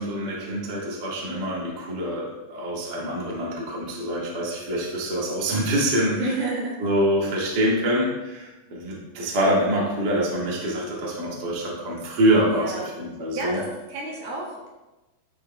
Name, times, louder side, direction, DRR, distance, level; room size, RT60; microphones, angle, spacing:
voice 1, 0.0-6.3 6.8-13.6, equal, 40° right, -5 dB, 1.5 m, -25 dB
voice 2, 6.2-6.8 12.5-12.9 13.3-14.7, right 2 dB, 65° right, -4 dB, 3.3 m, -30 dB
13.0 x 6.1 x 2.4 m, 1.1 s
omnidirectional pair, 4.8 m